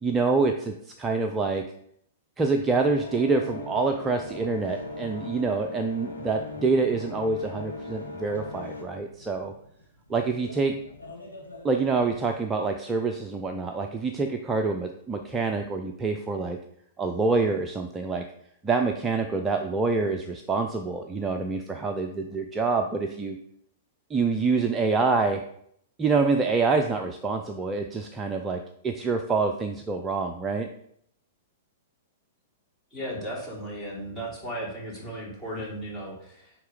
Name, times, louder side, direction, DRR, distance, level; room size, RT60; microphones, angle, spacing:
voice 1, 0.0-1.6 2.4-9.5 10.1-10.8 11.6-16.6 17.0-18.2 18.6-23.4 24.1-25.4 26.0-30.7, right 4 dB, 15° right, 4 dB, 0.6 m, -26 dB
sound 1, 2.7-12.2, left 3 dB, 90° left, 1.9 m, -40 dB
voice 2, 32.9-36.5, right 1 dB, 10° left, -5 dB, 3.1 m, -35 dB
9.2 x 3.6 x 5.0 m, 0.69 s
figure-of-eight pair, 105°, 0 cm